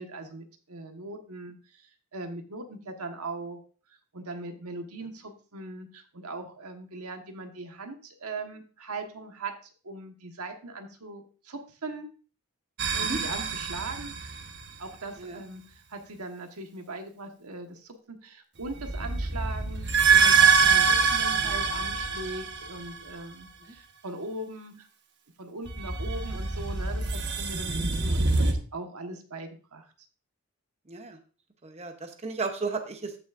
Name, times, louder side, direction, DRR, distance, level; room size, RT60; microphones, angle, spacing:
voice 1, 0.0-3.6 4.1-9.5 9.8-12.1 12.9-14.5 14.8-24.9 25.4-29.9, right 2 dB, 90° right, 5 dB, 1.4 m, -40 dB
sound 1, 12.8-14.7 18.6-23.1 25.7-28.5, right 5 dB, 50° right, 1.1 m, -25 dB
voice 2, 30.9-31.2 31.6-33.1, right 3 dB, 30° right, 6 dB, 0.8 m, -34 dB
14.0 x 6.2 x 2.5 m, 0.37 s
head